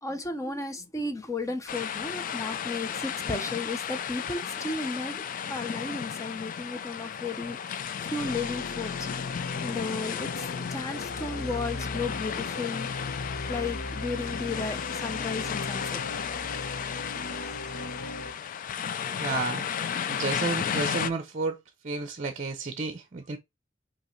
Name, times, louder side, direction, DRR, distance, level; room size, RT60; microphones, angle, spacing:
voice 1, 0.0-5.2 5.5-9.1 9.6-12.9 13.5-16.0, left 3 dB, 15° left, 0.7 m, -34 dB
sound 1, 1.7-21.1, left 8 dB, 45° left, 0.3 m, -34 dB
sound 2, 8.2-18.3, left 2 dB, 85° left, 0.8 m, -38 dB
voice 2, 19.2-19.6 20.1-21.6 21.8-23.4, right 3 dB, 40° right, 0.6 m, -31 dB
5.3 x 2.9 x 3.1 m
head